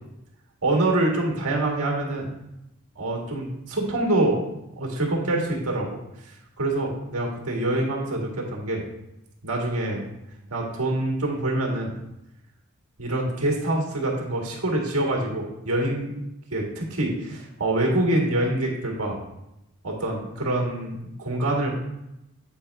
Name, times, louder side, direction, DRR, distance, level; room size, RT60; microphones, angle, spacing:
voice 1, 0.6-2.3 2.9-4.4 4.8-5.9 6.6-8.8 9.4-10.0 10.5-11.9 13.0-16.2 16.5-19.2 19.8-21.7, right 1 dB, 85° right, 0 dB, 1.7 m, -25 dB
8.6 x 5.0 x 3.3 m, 0.89 s
head